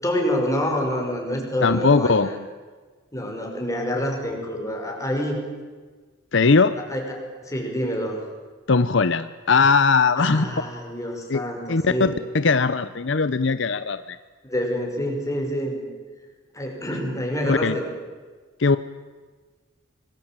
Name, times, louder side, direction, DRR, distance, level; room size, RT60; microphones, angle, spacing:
voice 1, 0.0-2.4 3.1-5.4 6.8-8.3 10.2-12.1 14.4-15.9 16.5-17.9, equal, 15° left, 1 dB, 5.7 m, -27 dB
voice 2, 1.6-2.3 6.3-6.8 8.7-10.5 11.3-11.4 11.7-14.2 17.4-17.7 18.6-18.8, left 4 dB, 65° left, 13 dB, 0.8 m, -19 dB
25.5 x 20.5 x 8.9 m, 1.4 s
head